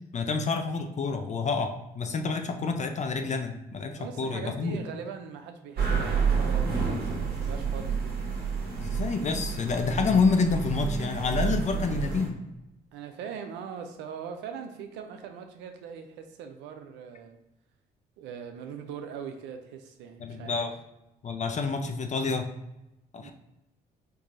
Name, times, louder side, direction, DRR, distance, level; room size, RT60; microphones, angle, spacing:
voice 1, 0.1-4.8 8.8-12.4 20.2-20.7 21.2-22.5 23.1-23.3, left 4 dB, 40° left, 5 dB, 0.5 m, -28 dB
voice 2, 4.0-8.1 12.9-17.4 18.2-20.6 23.1-23.3, right 7 dB, 85° right, 6 dB, 0.4 m, -41 dB
sound 1, 5.8-12.3, right 5 dB, 60° right, 1.3 m, -29 dB
4.6 x 2.6 x 2.5 m, 0.91 s
supercardioid pair, 70°, 18 cm